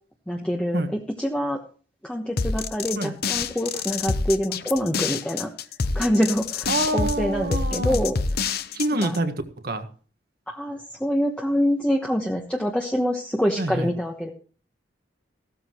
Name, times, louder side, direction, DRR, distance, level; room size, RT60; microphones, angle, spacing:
voice 1, 0.3-1.6 2.0-5.5 5.9-8.2 9.0-9.1 10.5-14.3, equal, 5° left, 0 dB, 1.1 m, -25 dB
sound 1, 2.4-9.2, left 4 dB, 55° left, 0.8 m, -27 dB
voice 2, 6.7-8.0 8.7-9.9 13.6-13.9, right 2 dB, 55° right, 7 dB, 1.5 m, -26 dB
15.5 x 13.0 x 3.1 m, 0.40 s
head